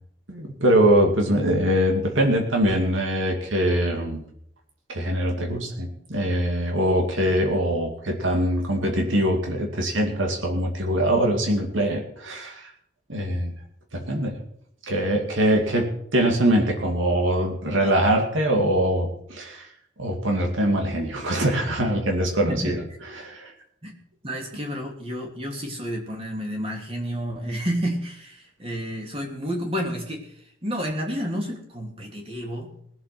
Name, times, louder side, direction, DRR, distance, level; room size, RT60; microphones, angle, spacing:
voice 1, 0.3-4.2 4.9-12.7 13.1-13.5 13.9-14.4 14.9-19.7 20.0-22.8 23.1-23.5, right 1 dB, 80° right, 2 dB, 2.5 m, -23 dB
voice 2, 24.2-30.3 30.6-32.7, equal, 30° right, 1 dB, 3.2 m, -30 dB
19.5 x 7.6 x 6.1 m, 0.70 s
head